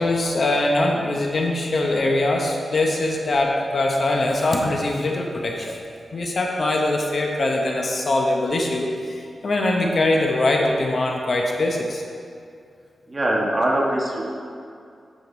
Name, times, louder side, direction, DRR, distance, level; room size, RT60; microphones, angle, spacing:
voice 1, 0.0-5.8 6.1-12.0, left 2 dB, 45° left, 1 dB, 0.9 m, -22 dB
voice 2, 13.1-14.2, right 1 dB, 25° right, -3 dB, 1.4 m, -22 dB
9.1 x 5.7 x 4.4 m, 2.4 s
wide cardioid pair, 135°, 0 cm